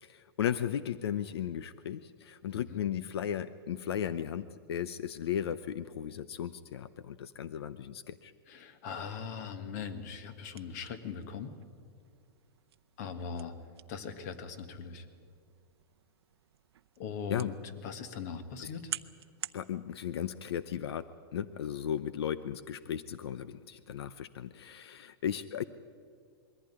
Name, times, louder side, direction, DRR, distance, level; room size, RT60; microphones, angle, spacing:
voice 1, 0.0-8.3 17.3-17.5 18.6-18.7 19.5-21.1 21.3-25.6, left 9 dB, 80° left, 15 dB, 0.7 m, -36 dB
voice 2, 8.5-11.6 13.0-13.5 13.9-15.1 17.0-18.9, left 6 dB, 40° left, 11 dB, 1.6 m, -40 dB
sound 1, 9.8-19.6, right 11 dB, 85° right, 0.7 m, -49 dB
21.5 x 15.0 x 10.0 m, 2.2 s
supercardioid pair, 165°, 13 cm